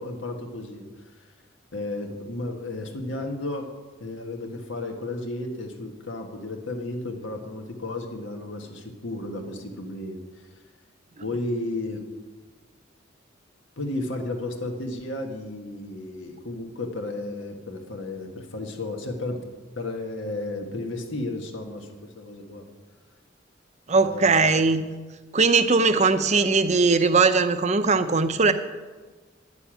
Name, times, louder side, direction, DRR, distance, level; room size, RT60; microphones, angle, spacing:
voice 1, 0.0-1.3 1.7-3.7 4.0-10.5 11.2-12.0 13.8-19.4 19.7-22.7 23.9-24.6, left 2 dB, 85° left, 3 dB, 1.7 m, -33 dB
voice 2, 23.9-24.8 25.3-28.5, right 4 dB, 35° right, 10 dB, 0.6 m, -20 dB
10.0 x 7.1 x 8.9 m, 1.3 s
head